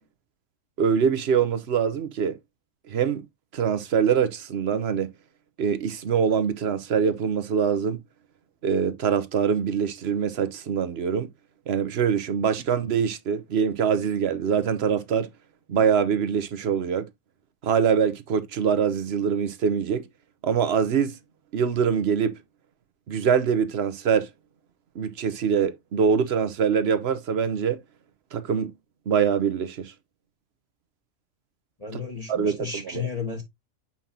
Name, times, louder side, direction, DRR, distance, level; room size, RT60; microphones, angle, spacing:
voice 1, 0.8-2.4 2.9-3.2 3.5-5.1 5.6-8.0 8.6-11.3 11.7-15.3 15.7-17.1 17.6-20.1 20.4-21.2 21.5-22.3 23.1-24.3 24.9-27.8 28.3-28.7 29.1-29.9 32.3-33.1, right 7 dB, 50° right, 1.0 m, -24 dB
voice 2, 31.8-33.4, left 5 dB, 25° left, 1.7 m, -33 dB
7.3 x 5.5 x 2.7 m
omnidirectional pair, 1.5 m